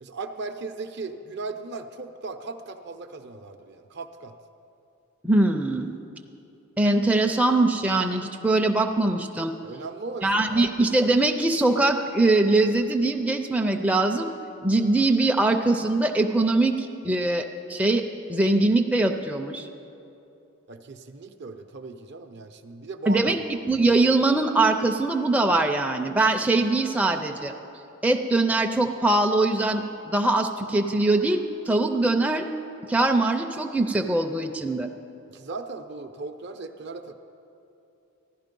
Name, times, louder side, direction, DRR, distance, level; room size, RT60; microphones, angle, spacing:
voice 1, 0.0-4.3 9.6-10.7 20.7-23.3 35.3-37.1, right 3 dB, 50° right, 7 dB, 0.6 m, -37 dB
voice 2, 5.2-5.9 6.8-9.5 10.2-14.3 14.6-18.0 18.3-19.7 23.1-27.5 28.0-32.4 32.9-34.9, right 2 dB, 5° right, 3 dB, 0.4 m, -22 dB
15.0 x 11.5 x 5.3 m, 2.8 s
head